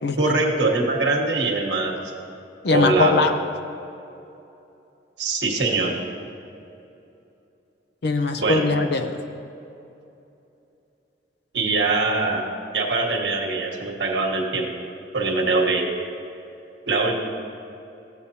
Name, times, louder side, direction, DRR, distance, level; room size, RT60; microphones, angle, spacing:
voice 1, 0.2-1.9 2.7-3.2 5.2-6.0 8.4-8.6 11.5-12.5 12.7-14.7 15.1-15.9 16.9-17.2, right 3 dB, 75° right, 0 dB, 1.2 m, -22 dB
voice 2, 2.6-3.3 8.0-9.2, left 3 dB, 65° left, 8 dB, 0.6 m, -21 dB
14.0 x 8.3 x 2.8 m, 2.8 s
head